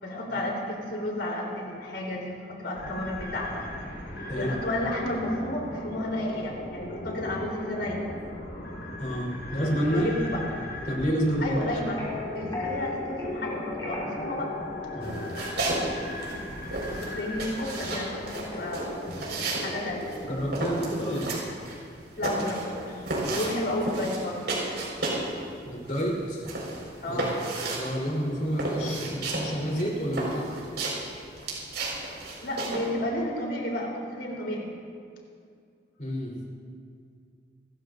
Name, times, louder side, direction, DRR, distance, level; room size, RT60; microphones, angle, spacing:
voice 1, 0.0-3.6 4.3-8.0 9.8-10.4 11.4-12.0 12.3-14.5 16.8-18.2 18.5-18.9 19.6-20.1 22.2-24.5 27.0-27.4 32.4-34.7, left 1 dB, 75° left, -2 dB, 3.7 m, -32 dB
sound 1, 2.7-20.7, left 1 dB, 60° left, 4.6 m, -38 dB
voice 2, 9.0-10.1 10.9-11.6 14.9-15.3 20.2-21.3 25.6-26.4 27.1-27.2 27.8-30.5 36.0-36.3, equal, 45° left, -3 dB, 3.7 m, -29 dB
sound 2, 11.9-16.0, left 3 dB, 25° left, 3.5 m, -37 dB
sound 3, 15.0-15.9 16.1-25.3 25.6-32.9, right 2 dB, 75° right, 4.8 m, -32 dB
29.0 x 14.0 x 2.6 m, 2.2 s
head